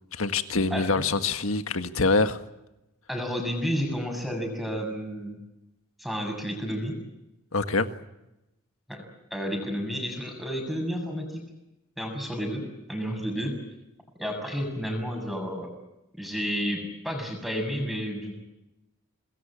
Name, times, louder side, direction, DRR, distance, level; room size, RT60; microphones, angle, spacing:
voice 1, 0.1-2.4 7.5-7.9, left 3 dB, 65° left, 1.7 m, -25 dB
voice 2, 0.7-1.0 3.1-5.4 6.0-7.0 8.9-9.1 9.3-11.4 12.0-13.6 14.2-15.7 16.2-18.4, equal, ahead, 7.0 m, -31 dB
27.5 x 21.0 x 8.8 m
head